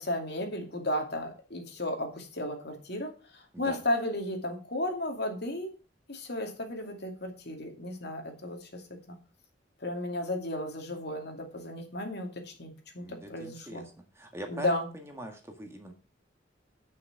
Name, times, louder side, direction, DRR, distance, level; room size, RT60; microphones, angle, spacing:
voice 1, 0.0-5.7 6.1-8.8 9.1-9.2 9.8-13.9 14.5-14.9, left 1 dB, 60° left, 3 dB, 2.4 m, -34 dB
voice 2, 13.0-13.8 14.1-15.9, right 1 dB, 15° right, 4 dB, 1.7 m, -42 dB
9.4 x 6.4 x 5.9 m, 0.34 s
head